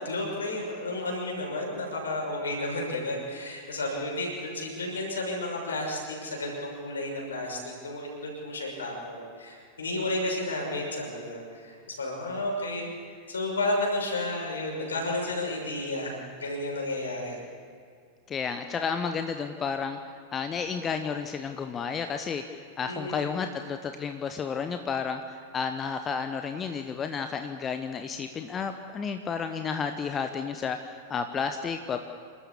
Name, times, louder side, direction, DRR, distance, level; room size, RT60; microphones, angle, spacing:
voice 1, 0.0-12.9 13.3-17.4 22.8-23.3, left 2 dB, 70° left, -1 dB, 6.4 m, -32 dB
voice 2, 18.3-20.0 20.3-22.4 22.8-32.0, left 6 dB, 25° left, 7 dB, 1.0 m, -32 dB
28.0 x 13.0 x 8.5 m, 2.2 s
figure-of-eight pair, 90°, 0 cm